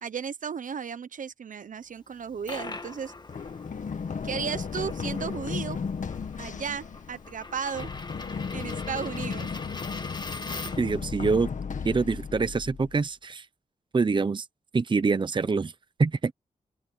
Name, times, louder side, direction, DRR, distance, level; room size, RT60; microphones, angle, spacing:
voice 1, 0.0-3.1 4.2-5.8 6.4-7.9 8.5-9.5, right 7 dB, 70° right, 1.1 m, -34 dB
Coin (dropping), 2.1-11.0, left 3 dB, 30° left, 1.9 m, -42 dB
Run, 3.3-13.0, left 5 dB, 65° left, 1.8 m, -35 dB
voice 2, 10.8-11.5 11.8-13.5 13.9-14.5 14.7-15.7 16.0-16.3, right 4 dB, 35° right, 0.8 m, -25 dB
open air
wide cardioid pair, 85°, 14 cm